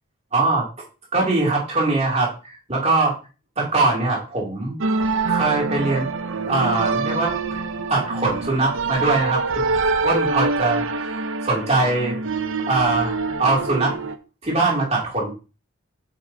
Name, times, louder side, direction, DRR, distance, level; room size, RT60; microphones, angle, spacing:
voice 1, 0.3-0.7 1.1-2.3 2.7-3.2 3.6-4.7 5.2-6.1 6.4-7.6 7.9-9.7 10.0-10.8 11.1-12.2 12.7-13.9 14.4-15.3, right 3 dB, 30° right, -3 dB, 3.0 m, -22 dB
sound 1, 4.8-14.1, right 4 dB, 65° right, 0.8 m, -25 dB
9.2 x 5.8 x 2.9 m, 0.33 s
head